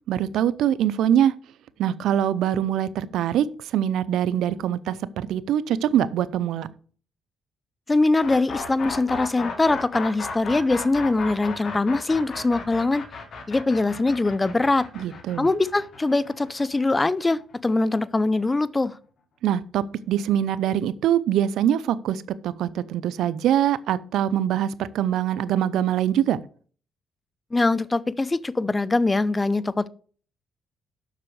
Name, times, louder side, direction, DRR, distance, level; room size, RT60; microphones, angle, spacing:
voice 1, 0.1-1.3 1.8-6.7 14.9-15.5 19.4-26.4, right 10 dB, 80° right, 0.6 m, -23 dB
voice 2, 7.9-13.0 13.5-14.9 15.4-19.0 27.5-29.9, left 2 dB, 20° left, 0.6 m, -22 dB
sound 1, 8.2-18.0, left 4 dB, 55° left, 2.1 m, -35 dB
7.5 x 6.1 x 6.4 m
cardioid pair, 90°, 0 cm